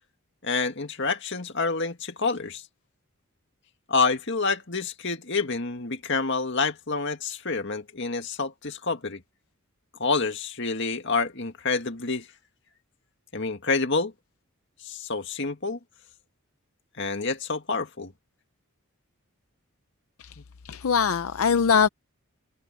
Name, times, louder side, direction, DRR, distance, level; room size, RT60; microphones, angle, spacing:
voice 1, 0.4-2.6 3.9-9.2 10.0-12.3 13.3-14.1 14.8-15.8 17.0-18.1 20.4-20.5, left 4 dB, 55° left, 2.1 m, -28 dB
voice 2, 20.7-21.9, left 6 dB, 75° left, 0.6 m, -21 dB
head